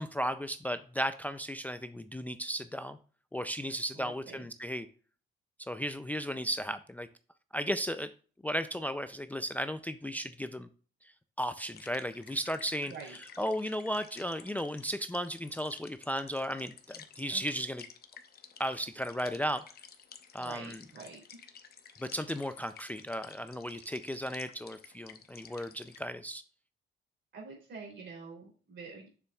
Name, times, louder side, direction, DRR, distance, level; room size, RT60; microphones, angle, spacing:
voice 1, 0.0-3.0 3.3-4.9 5.6-7.1 7.5-8.1 8.4-10.7 11.4-12.9 13.4-17.8 18.6-19.6 20.3-20.8 22.0-26.4, equal, 10° left, 11 dB, 0.4 m, -35 dB
voice 2, 3.9-4.5 12.9-13.2 17.3-17.4 20.4-21.4 27.3-29.1, right 4 dB, 65° right, 0 dB, 3.2 m, -47 dB
sound 1, 11.7-26.0, left 7 dB, 50° left, 0.9 m, -53 dB
6.9 x 6.7 x 2.3 m, 0.39 s
cardioid pair, 90°, 20 cm